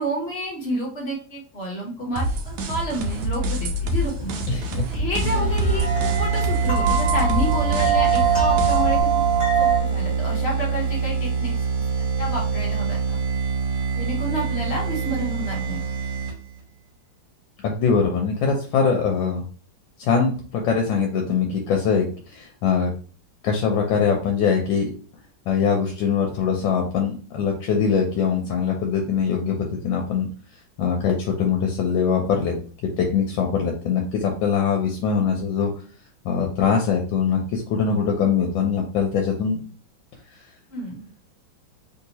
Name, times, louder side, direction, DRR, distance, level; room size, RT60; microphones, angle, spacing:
voice 1, 0.0-9.1 9.6-11.5 12.2-13.4 13.9-15.8 40.7-41.1, right 1 dB, 50° left, -2 dB, 0.7 m, -30 dB
sound 1, 2.2-9.8, right 7 dB, 20° left, 1.4 m, -24 dB
sound 2, 2.2-9.0, left 1 dB, 85° right, 1.4 m, -27 dB
voice 2, 4.5-4.8 17.6-19.4 20.0-22.9 23.4-24.9 25.5-30.3 30.8-32.5 33.0-35.7 36.2-39.6, left 6 dB, 80° left, 2 dB, 1.3 m, -22 dB
sound 3, 5.2-16.6, right 5 dB, 70° right, 1.6 m, -25 dB
3.3 x 2.7 x 2.8 m, 0.40 s
omnidirectional pair, 2.1 m